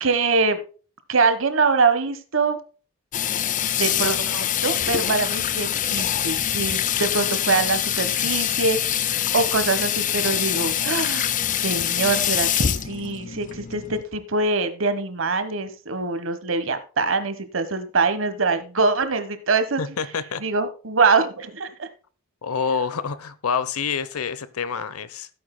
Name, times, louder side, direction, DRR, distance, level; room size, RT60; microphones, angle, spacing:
voice 1, 0.0-0.6 1.1-2.6 3.8-11.3 11.6-19.8 20.4-21.9, right 4 dB, 60° right, 1.2 m, -24 dB
Water tap faucet / Sink (filling or washing), 3.1-14.0, left 10 dB, 35° left, 0.4 m, -24 dB
voice 2, 19.8-20.4 22.4-25.3, left 6 dB, 80° left, 0.8 m, -27 dB
16.5 x 8.5 x 2.2 m
head